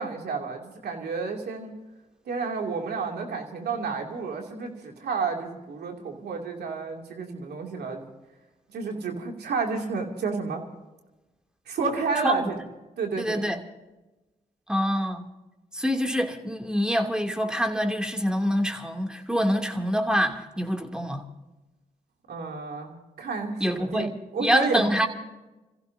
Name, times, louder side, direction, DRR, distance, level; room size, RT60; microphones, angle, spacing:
voice 1, 0.0-1.7 2.3-8.0 8.7-10.6 11.7-12.6 13.0-13.5 22.3-24.8, right 4 dB, 75° right, 2.7 m, -31 dB
voice 2, 13.2-13.6 14.7-15.2 15.7-21.3 23.6-24.1 24.4-25.1, equal, 5° right, 2.7 m, -25 dB
29.0 x 15.5 x 2.8 m
supercardioid pair, 40°, 17 cm